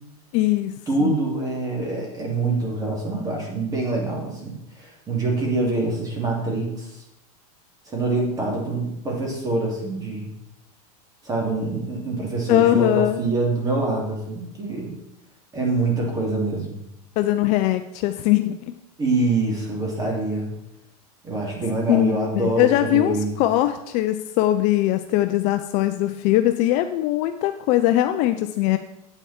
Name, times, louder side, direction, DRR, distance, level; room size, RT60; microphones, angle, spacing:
voice 1, 0.3-1.1 12.5-13.2 17.2-18.8 21.9-28.8, left 14 dB, 35° left, 8 dB, 0.4 m, -21 dB
voice 2, 0.9-7.0 7.9-10.3 11.2-14.9 15.5-16.8 19.0-20.5 21.2-23.4, right 2 dB, 20° right, -1 dB, 2.7 m, -25 dB
8.9 x 8.5 x 4.2 m, 0.83 s
supercardioid pair, 150°, 20 cm